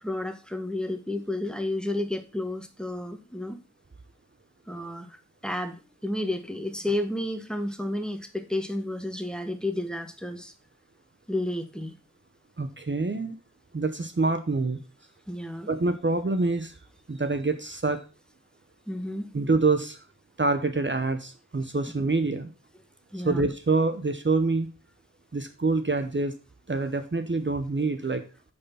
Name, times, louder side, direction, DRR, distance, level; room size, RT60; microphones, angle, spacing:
voice 1, 0.0-3.6 4.7-5.1 5.4-5.8 6.0-10.5 11.3-11.9 15.3-15.7 18.9-19.3 21.8-21.9 23.1-23.4, left 1 dB, 5° left, 7 dB, 1.3 m, -31 dB
voice 2, 12.6-13.3 13.7-14.8 15.7-16.7 17.1-18.0 19.3-20.0 20.4-22.5 23.2-24.7 25.3-26.3 26.7-28.2, right 3 dB, 40° right, 8 dB, 0.9 m, -26 dB
8.6 x 4.3 x 5.6 m, 0.34 s
wide cardioid pair, 45°, 29 cm